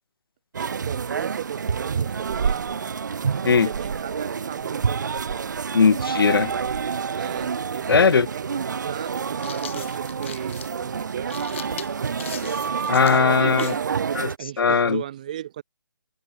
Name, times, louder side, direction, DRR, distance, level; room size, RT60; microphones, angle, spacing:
sound 1, 0.5-14.4, right 6 dB, 55° right, 1.9 m, -28 dB
voice 1, 0.6-2.7 3.4-4.9 7.2-11.5 13.3-15.6, right 11 dB, 20° right, 0.5 m, -36 dB
sound 2, 1.6-5.4, left 15 dB, 10° left, 3.5 m, -59 dB
voice 2, 5.7-6.5 7.9-8.3 12.9-13.7 14.1-14.3 14.6-15.0, left 5 dB, 80° left, 0.6 m, -18 dB
sound 3, 9.3-13.9, left 9 dB, 35° left, 1.4 m, -40 dB
hypercardioid pair, 165°, 12 cm